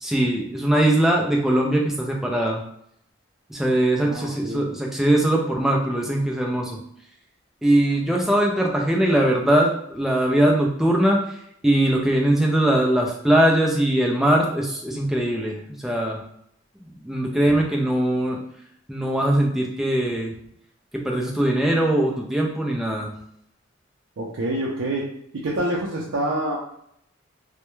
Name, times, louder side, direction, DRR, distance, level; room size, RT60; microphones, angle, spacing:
voice 1, 0.0-2.6 3.5-6.8 7.6-11.2 11.6-16.2 17.0-18.4 18.9-20.3 20.9-23.1, right 1 dB, ahead, -1 dB, 0.3 m, -21 dB
voice 2, 4.0-4.7 24.2-25.1 25.3-26.6, right 1 dB, 70° right, -4 dB, 0.4 m, -27 dB
2.2 x 2.1 x 3.0 m, 0.71 s
head